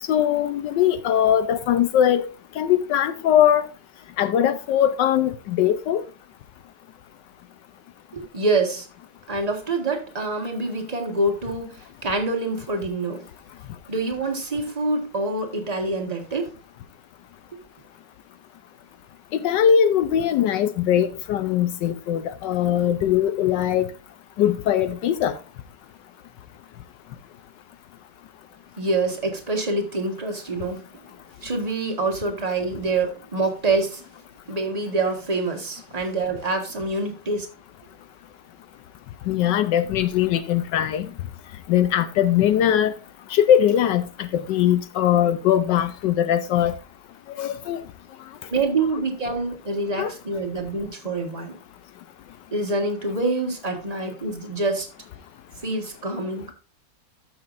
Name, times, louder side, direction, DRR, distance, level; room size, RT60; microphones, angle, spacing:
voice 1, 0.1-2.3 2.6-3.7 4.2-6.0 19.3-23.9 24.4-25.4 39.3-41.1 41.7-42.9 43.3-46.7 47.4-47.8 50.0-50.1, left 10 dB, 80° left, 1.3 m, -21 dB
voice 2, 8.1-8.9 9.3-13.2 13.9-16.5 28.8-31.0 31.4-34.0 34.5-37.5 48.5-51.5 52.5-54.9 55.6-56.4, right 3 dB, 20° right, 1.5 m, -26 dB
13.0 x 6.2 x 2.5 m
omnidirectional pair, 1.9 m